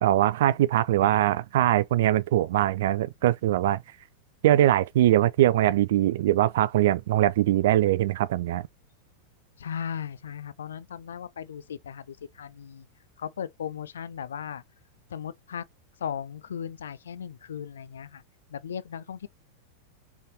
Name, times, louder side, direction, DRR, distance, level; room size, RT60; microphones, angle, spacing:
voice 1, 0.0-3.8 4.4-8.7, right 13 dB, 55° right, 0.3 m, -22 dB
voice 2, 9.6-12.9 13.2-14.6 15.1-15.6 16.0-18.2 18.5-19.3, left 8 dB, 65° left, 0.4 m, -37 dB
4.0 x 3.4 x 2.6 m
figure-of-eight pair, 90°, 0 cm